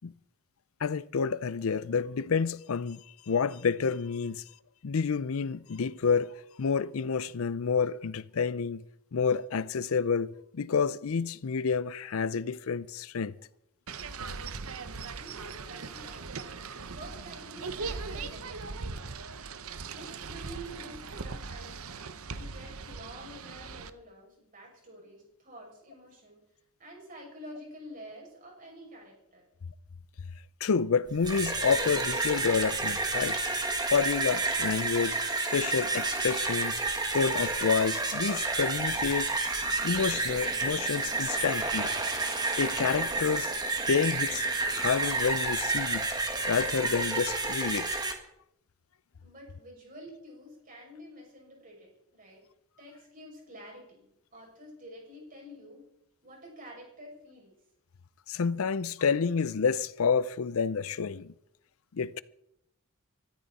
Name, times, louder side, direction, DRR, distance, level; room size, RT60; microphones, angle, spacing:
voice 1, 0.8-3.0 3.3-4.4 4.8-8.8 9.1-13.3 30.6-33.4 33.9-35.2 35.5-36.8 37.1-39.3 39.8-41.9 42.6-43.5 43.9-44.5 44.7-46.1 46.5-47.9 58.3-61.3 61.9-62.2, left 5 dB, 70° left, 0.5 m, -29 dB
sound 1, 13.9-23.9, right 4 dB, 75° right, 0.9 m, -40 dB
voice 2, 14.7-16.6 16.9-18.9 19.9-26.4 26.8-29.5 49.2-52.4 52.8-55.9 56.2-57.5, equal, 40° right, 6.6 m, -49 dB
sound 2, 31.1-48.1, right 3 dB, 20° right, 1.8 m, -30 dB
24.0 x 14.0 x 4.2 m
head